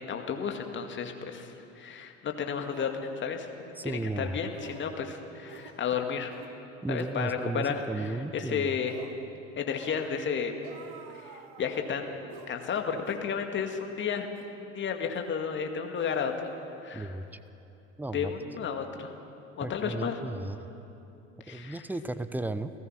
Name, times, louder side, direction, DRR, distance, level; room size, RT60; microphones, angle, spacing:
voice 1, 0.0-6.3 6.9-9.2 9.6-10.5 11.2-14.3 14.6-16.3 16.8-17.2 18.1-19.1 19.6-20.2 21.4-21.8, left 6 dB, 30° left, 4 dB, 2.2 m, -33 dB
sound 1, 2.0-2.1 2.7-3.0 3.8-4.0 4.5-4.9 5.4-5.8 6.3-6.5 7.0-7.2 7.7-8.0 8.9-9.2 9.7-10.1 10.6-11.9 12.3-12.6 13.1-13.3 13.7-13.9 14.4-14.5 15.1-15.3 16.0-17.0 17.3-17.5, right 6 dB, 55° right, 1.8 m, -50 dB
voice 2, 3.8-4.4 6.8-8.7 16.9-17.2 18.0-18.3 19.6-20.6 21.5-22.7, right 2 dB, 5° right, 13 dB, 0.8 m, -34 dB
29.5 x 16.0 x 5.9 m, 2.8 s
figure-of-eight pair, 70°, 38 cm